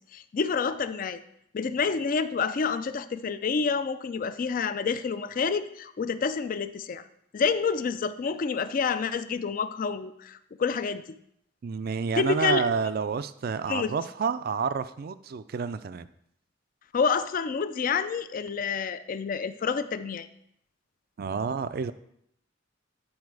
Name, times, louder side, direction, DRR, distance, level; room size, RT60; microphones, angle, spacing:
voice 1, 0.1-1.2 1.5-7.0 7.3-11.0 12.2-12.6 13.7-13.9 16.9-20.3, left 5 dB, 45° left, 12 dB, 0.4 m, -28 dB
voice 2, 11.6-16.1 21.2-21.9, right 5 dB, 50° right, 13 dB, 0.4 m, -29 dB
9.5 x 4.3 x 4.7 m, 0.73 s
head